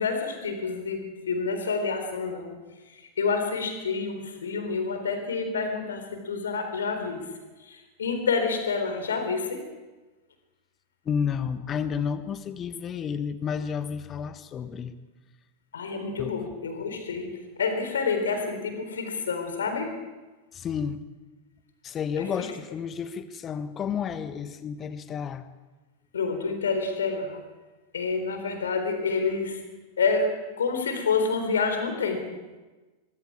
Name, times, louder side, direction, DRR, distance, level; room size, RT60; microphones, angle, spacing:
voice 1, 0.0-2.5 2.9-7.2 7.6-9.6 15.7-19.9 22.2-22.5 26.1-27.4 27.9-29.6 30.0-30.3 30.6-32.4, left 4 dB, 65° left, 6 dB, 3.9 m, -28 dB
voice 2, 11.0-14.9 16.2-16.3 20.5-21.0 21.8-25.4, left 7 dB, 25° left, 12 dB, 1.3 m, -31 dB
23.5 x 23.0 x 4.9 m, 1.2 s
figure-of-eight pair, 90°, 0 cm